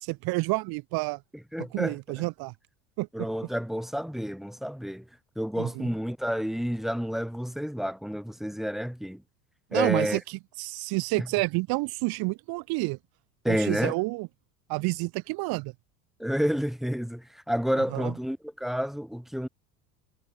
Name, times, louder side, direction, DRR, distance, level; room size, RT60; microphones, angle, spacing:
voice 1, 0.0-1.2 1.6-2.5 3.0-3.1 5.6-5.9 9.7-13.0 13.5-14.3 14.7-15.7 17.9-18.1, right 24 dB, 55° right, 2.8 m, -29 dB
voice 2, 1.5-1.9 3.1-5.0 5.4-9.2 9.7-10.2 11.2-11.3 13.4-13.9 16.2-19.5, equal, ahead, 1.4 m, -29 dB
hypercardioid pair, 75°, 44 cm